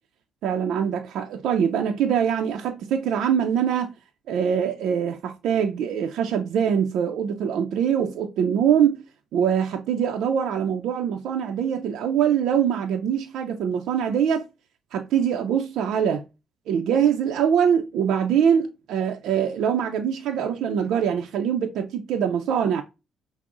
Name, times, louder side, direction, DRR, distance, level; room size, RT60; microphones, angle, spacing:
voice 1, 0.4-3.9 4.3-9.0 9.3-14.5 14.9-16.2 16.7-22.8, right 8 dB, 80° right, 0.5 m, -23 dB
5.9 x 2.1 x 3.6 m
cardioid pair, 90°, 0 cm